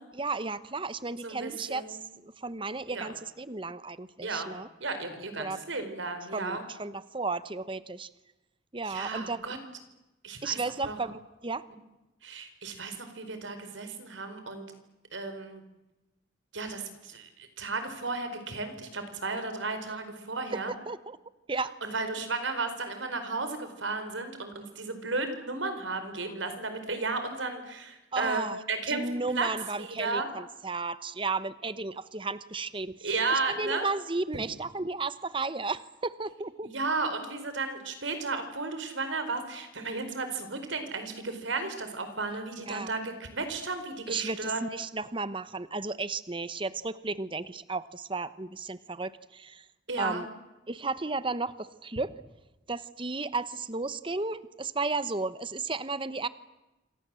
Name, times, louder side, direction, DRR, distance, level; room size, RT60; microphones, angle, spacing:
voice 1, 0.1-4.7 5.4-5.6 6.3-8.1 8.7-9.5 10.4-11.7 20.9-21.2 21.5-21.8 28.1-28.6 28.9-33.1 33.6-36.7 42.7-42.9 44.1-49.6 50.0-50.3 50.7-52.1 52.7-56.3, right 3 dB, 25° right, 15 dB, 0.9 m, -34 dB
voice 2, 1.2-2.0 2.9-3.1 4.2-4.5 4.8-6.6 8.8-9.6 10.2-10.6 10.8-11.0 12.2-14.7 15.1-15.6 16.5-20.7 21.8-29.5 29.8-30.3 33.0-33.9 36.6-44.6 49.9-50.2, right 3 dB, 80° right, 8 dB, 4.5 m, -34 dB
27.5 x 25.5 x 7.6 m, 1.0 s
head